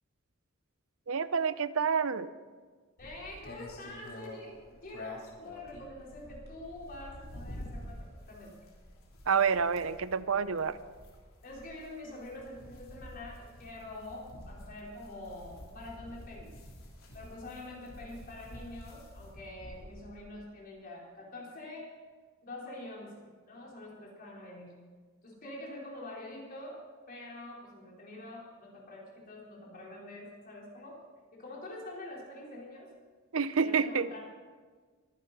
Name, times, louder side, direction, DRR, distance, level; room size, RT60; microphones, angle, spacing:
voice 1, 1.1-2.3 9.3-10.8 33.3-34.1, right 6 dB, 75° right, 15 dB, 0.6 m, -28 dB
sound 1, 3.0-20.2, left 1 dB, 80° left, 3.4 m, -48 dB
voice 2, 3.0-4.6 4.8-8.5 11.4-16.5 17.1-21.9 22.4-24.8 25.2-26.8 27.1-31.0 31.3-32.9 33.5-34.2, left 2 dB, 45° left, -4 dB, 4.3 m, -46 dB
23.5 x 10.5 x 4.2 m, 1.5 s
head